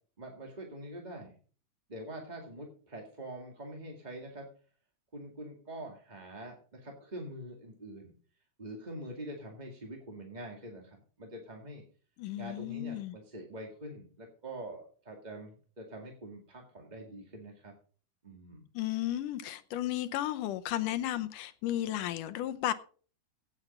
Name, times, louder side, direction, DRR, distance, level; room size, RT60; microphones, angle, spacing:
voice 1, 0.2-1.3 1.9-4.5 5.1-8.1 8.6-11.8 12.3-17.7 18.2-18.7, right 1 dB, 15° right, 1.6 m, -45 dB
voice 2, 12.2-13.2 18.7-22.7, left 13 dB, 75° left, 2.2 m, -34 dB
16.5 x 7.4 x 5.3 m
omnidirectional pair, 4.0 m